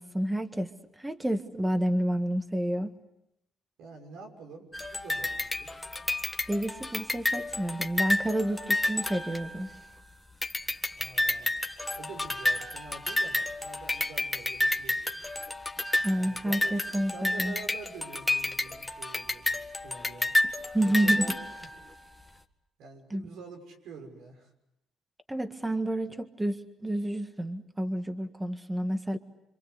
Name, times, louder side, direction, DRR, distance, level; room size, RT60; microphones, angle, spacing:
voice 1, 0.0-2.9 6.5-9.7 16.0-17.5 20.7-21.3 23.1-23.2 25.3-29.2, right 1 dB, 10° right, 7 dB, 1.7 m, -29 dB
voice 2, 3.8-5.8 11.0-11.6 11.9-15.0 16.1-20.3 20.8-21.3 22.8-24.5, right 4 dB, 85° right, 2 dB, 6.5 m, -46 dB
sound 1, 4.7-10.0 10.4-22.0, left 2 dB, 10° left, 1.7 m, -31 dB
27.5 x 25.5 x 8.1 m, 0.86 s
cardioid pair, 90°, 0 cm